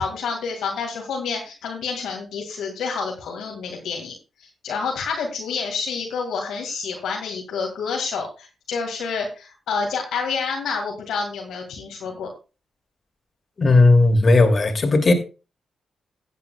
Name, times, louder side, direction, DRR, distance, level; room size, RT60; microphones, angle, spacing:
voice 1, 0.0-4.1 4.4-12.3, left 5 dB, 75° left, 2.0 m, -28 dB
voice 2, 13.6-15.1, left 2 dB, 45° left, 2.7 m, -15 dB
16.0 x 8.3 x 2.3 m
hypercardioid pair, 40°, 0 cm